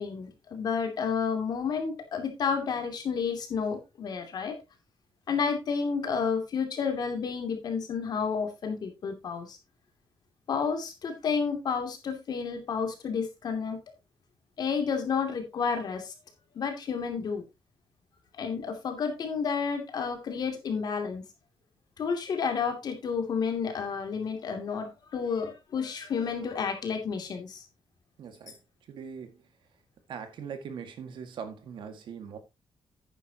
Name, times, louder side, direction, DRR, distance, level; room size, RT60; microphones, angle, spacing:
voice 1, 0.0-4.6 5.3-9.6 10.5-13.8 14.6-16.1 16.5-17.4 18.3-21.2 22.0-27.6, left 6 dB, 50° left, 2.7 m, -31 dB
voice 2, 28.2-28.6 28.9-29.5 30.1-32.4, right 7 dB, 70° right, 1.9 m, -41 dB
11.0 x 9.1 x 2.9 m
wide cardioid pair, 175°, 9 cm